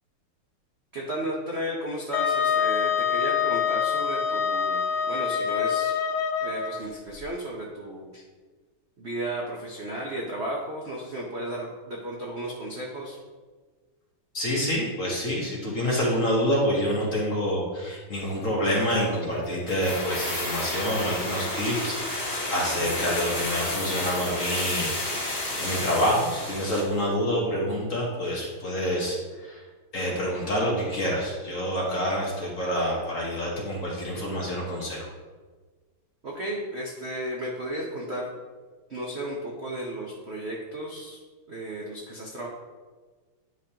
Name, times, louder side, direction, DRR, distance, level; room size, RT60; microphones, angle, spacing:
voice 1, 0.9-6.0 6.4-8.2 9.0-13.2 36.2-38.3 38.9-41.2 41.5-42.5, right 1 dB, 60° right, -3 dB, 0.7 m, -34 dB
Wind instrument woodwind instrument, 2.1-6.8, left 7 dB, 70° left, 1.0 m, -25 dB
voice 2, 14.3-29.6 29.9-35.1, equal, 45° left, -3 dB, 1.3 m, -27 dB
sound 1, 19.7-27.0 27.2-27.3, left 1 dB, 25° left, 1.2 m, -31 dB
9.6 x 5.1 x 2.9 m, 1.4 s
omnidirectional pair, 2.4 m